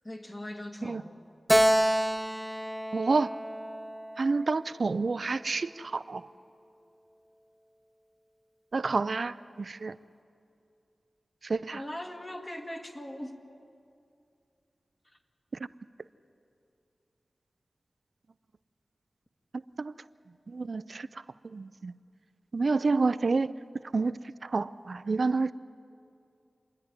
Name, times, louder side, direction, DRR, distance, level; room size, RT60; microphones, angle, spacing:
voice 1, 0.0-1.2 11.7-13.4, left 1 dB, 25° left, 3 dB, 1.8 m, -40 dB
Keyboard (musical), 1.5-4.9, equal, 5° right, 0.4 m, -28 dB
voice 2, 2.9-3.3 4.2-6.2 8.7-9.9 11.4-11.8 19.8-19.9 20.5-21.1 21.4-21.9 22.5-23.5 23.9-24.1 24.4-25.5, right 3 dB, 65° right, 16 dB, 0.5 m, -28 dB
27.5 x 10.5 x 9.7 m, 2.5 s
wide cardioid pair, 55°, 0 cm